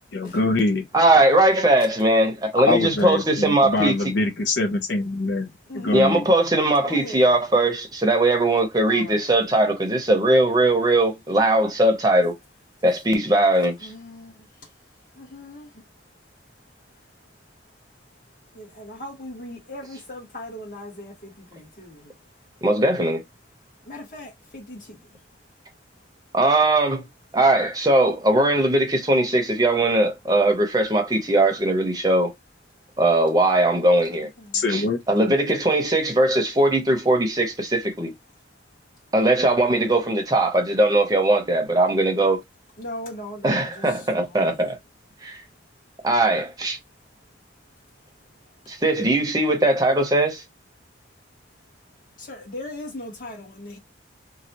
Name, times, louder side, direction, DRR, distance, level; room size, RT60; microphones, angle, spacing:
voice 1, 0.1-0.8 2.7-5.5 5.7-6.2 34.5-35.0, left 2 dB, 80° left, 0.6 m, -23 dB
voice 2, 0.9-4.0 5.9-12.3 12.8-13.9 22.6-23.2 26.3-27.0 27.3-32.3 33.0-34.3 34.7-38.1 39.1-42.4 43.4-44.8 45.2-45.4 46.0-46.8 48.7-50.4, right 1 dB, 20° right, 0.7 m, -20 dB
voice 3, 5.7-6.3 6.8-7.4 8.8-9.3 13.8-14.7 15.0-15.8 16.9-17.3 18.5-22.6 23.8-25.2 34.0-34.7 42.8-44.7 52.2-53.8, left 1 dB, 45° left, 1.5 m, -39 dB
3.1 x 2.3 x 2.8 m
head